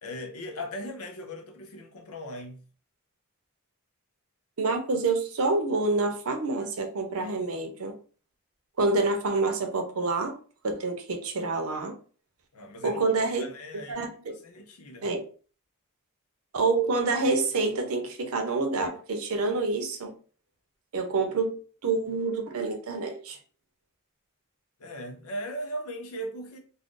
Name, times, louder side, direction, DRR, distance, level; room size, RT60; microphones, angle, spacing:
voice 1, 0.0-2.6 12.5-13.0 13.4-15.1 24.8-26.6, equal, 85° left, 0.7 m, -38 dB
voice 2, 4.6-7.9 8.8-10.3 10.6-11.9 12.8-13.5 13.9-14.3 15.0-15.2 16.5-20.1 20.9-21.6 21.8-23.4, right 3 dB, 75° right, 0.6 m, -27 dB
2.5 x 2.1 x 3.6 m
head